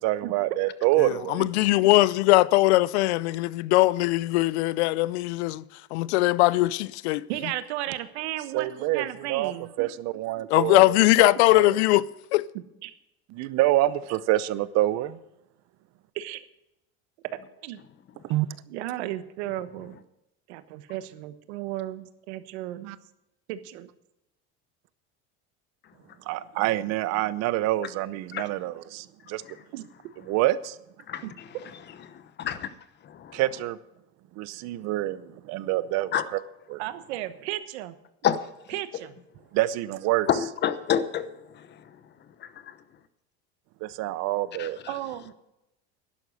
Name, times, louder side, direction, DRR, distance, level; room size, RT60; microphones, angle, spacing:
voice 1, 0.0-1.4 8.5-9.5 9.8-10.8 11.2-11.8 13.3-15.2 18.3-18.5 22.8-23.0 26.3-29.4 30.3-30.8 33.3-33.8 34.4-36.4 36.7-36.8 39.5-40.3 43.8-44.8, right 15 dB, 55° right, 0.8 m, -26 dB
voice 2, 1.0-5.6 5.9-7.3 10.5-12.0 12.3-12.4, left 19 dB, 85° left, 0.6 m, -21 dB
voice 3, 7.3-9.7 12.5-12.9 16.1-16.4 17.6-17.8 18.7-20.0 20.5-22.9 23.5-23.9 29.7-29.9 31.2-31.3 36.8-37.9 38.7-39.2 44.9-45.3, right 14 dB, 85° right, 1.2 m, -34 dB
voice 4, 40.3-41.3 44.6-44.7, left 9 dB, 35° left, 0.9 m, -26 dB
11.5 x 11.0 x 6.4 m
supercardioid pair, 130°, 32 cm